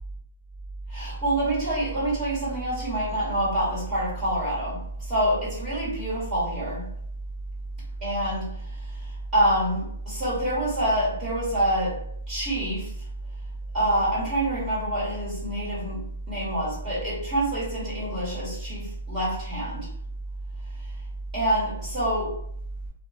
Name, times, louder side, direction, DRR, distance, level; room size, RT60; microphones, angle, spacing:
voice 1, 0.9-6.8 8.0-12.9 13.7-16.0 16.3-19.9 21.3-22.4, right 1 dB, 25° right, -9 dB, 1.4 m, -26 dB
2.5 x 2.2 x 2.5 m, 0.68 s
hypercardioid pair, 140°, 0 cm